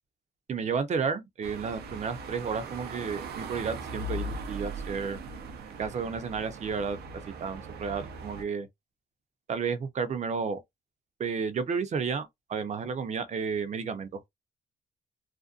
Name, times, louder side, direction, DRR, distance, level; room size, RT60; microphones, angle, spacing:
voice 1, 0.5-5.2 5.8-8.7 9.5-10.6 11.2-14.3, right 5 dB, 45° right, 0.6 m, -32 dB
sound 1, 1.4-8.4, right 2 dB, 90° right, 0.6 m, -39 dB
2.5 x 2.1 x 2.5 m
cardioid pair, 105°, 16 cm